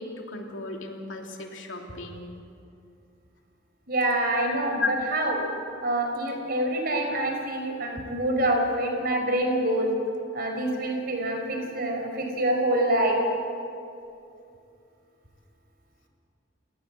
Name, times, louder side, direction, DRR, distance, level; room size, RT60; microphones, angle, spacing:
voice 1, 0.0-2.3 4.7-4.9, left 4 dB, 70° left, 1 dB, 3.2 m, -34 dB
voice 2, 3.9-4.8 5.1-5.4 5.8-9.9 10.3-13.2, right 1 dB, 50° right, 3 dB, 5.0 m, -26 dB
29.5 x 18.5 x 7.7 m, 2.5 s
head